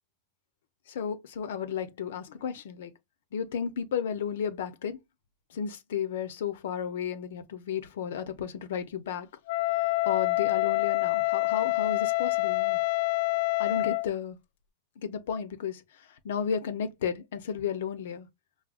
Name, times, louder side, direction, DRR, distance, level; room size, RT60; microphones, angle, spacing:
voice 1, 0.9-2.9 3.3-5.0 5.5-9.3 10.1-12.8 13.6-14.4 15.0-15.8 16.2-18.3, left 7 dB, 90° left, 0.7 m, -33 dB
Wind instrument woodwind instrument, 9.5-14.1, left 23 dB, 70° left, 0.3 m, -26 dB
4.8 x 2.2 x 2.4 m
supercardioid pair, 150°, 0 cm